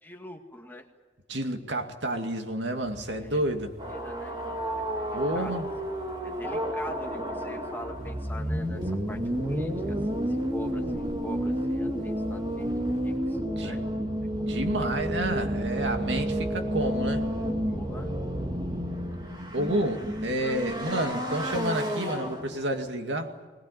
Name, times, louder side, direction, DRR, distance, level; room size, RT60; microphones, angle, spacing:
voice 1, 0.0-0.9 3.1-3.4 3.9-4.6 5.3-5.5 6.2-13.8 14.2-14.5 14.8-15.0 17.6-18.1 19.7-19.8 20.4-20.6, equal, 10° left, 3 dB, 1.8 m, -44 dB
voice 2, 1.3-3.8 5.1-5.7 10.8-10.9 13.6-13.8 14.5-17.3 19.5-23.3, right 1 dB, 85° right, 5 dB, 2.3 m, -30 dB
sound 1, 2.8-13.2, equal, 40° right, 4.6 m, -50 dB
sound 2, 3.8-22.9, equal, 25° right, 2.5 m, -31 dB
20.5 x 20.5 x 9.8 m, 1.4 s
head